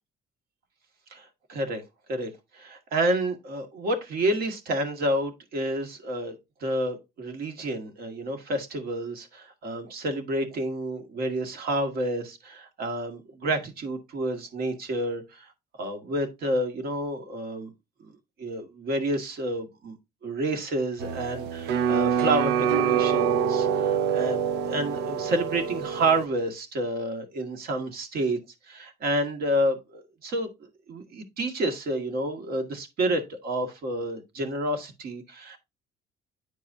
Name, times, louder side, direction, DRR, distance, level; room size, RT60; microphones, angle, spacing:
voice 1, 1.5-1.8 2.1-6.4 6.6-15.5 15.8-17.7 18.4-19.9 20.2-28.4 28.7-30.5 30.9-35.6, right 1 dB, 65° right, 2.0 m, -29 dB
sound 1, 21.0-26.3, right 7 dB, 90° right, 0.6 m, -25 dB
9.8 x 4.7 x 2.7 m
cardioid pair, 110°, 17 cm